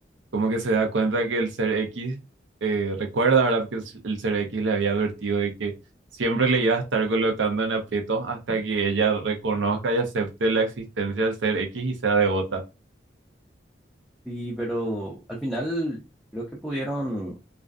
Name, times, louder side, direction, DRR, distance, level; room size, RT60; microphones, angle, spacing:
voice 1, 0.3-2.2 2.6-5.7 6.2-12.6, right 4 dB, 90° right, 0.6 m, -24 dB
voice 2, 14.3-16.0 16.3-17.4, right 1 dB, ahead, 0.4 m, -30 dB
2.4 x 2.3 x 2.4 m
head